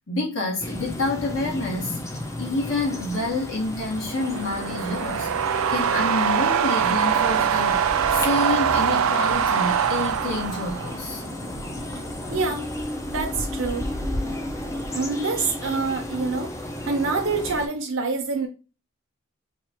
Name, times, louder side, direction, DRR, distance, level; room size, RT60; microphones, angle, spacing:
voice 1, 0.1-2.0 2.4-5.3 5.7-11.2, left 2 dB, 65° left, 1.5 m, -28 dB
sound 1, 0.6-17.7, left 1 dB, 15° left, 0.5 m, -33 dB
sound 2, 4.0-11.1, right 8 dB, 85° right, 0.3 m, -23 dB
voice 2, 12.3-12.7 13.0-13.9 14.9-16.5 16.8-18.5, right 4 dB, 65° right, 0.7 m, -26 dB
4.4 x 2.4 x 2.9 m
head